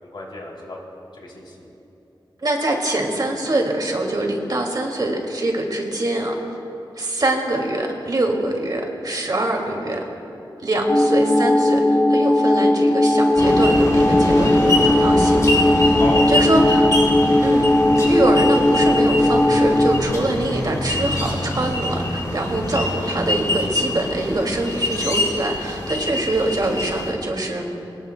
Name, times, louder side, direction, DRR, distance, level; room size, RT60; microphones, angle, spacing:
voice 1, 0.0-0.8 1.1-1.7 16.0-16.8, left 2 dB, 70° left, -2 dB, 3.2 m, -32 dB
voice 2, 2.4-6.6 7.0-10.0 10.6-15.4 16.3-16.9 17.4-17.7 18.0-27.7, right 1 dB, 50° right, 1 dB, 2.3 m, -24 dB
sound 1, 10.9-20.0, left 1 dB, 10° left, 0.7 m, -17 dB
sound 2, 13.4-27.1, left 1 dB, 40° left, 4.3 m, -24 dB
24.0 x 19.5 x 2.3 m, 2.9 s
wide cardioid pair, 110°, 9 cm